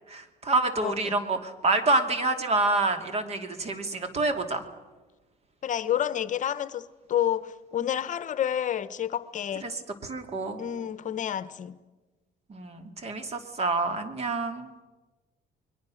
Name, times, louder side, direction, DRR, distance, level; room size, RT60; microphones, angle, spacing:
voice 1, 0.1-4.7 9.6-10.6 12.5-14.7, right 2 dB, 40° right, 2.9 m, -27 dB
voice 2, 0.8-1.2 5.6-9.7 10.6-11.8, left 10 dB, 50° left, 1.0 m, -29 dB
29.5 x 22.5 x 6.5 m
cardioid pair, 110°, 17 cm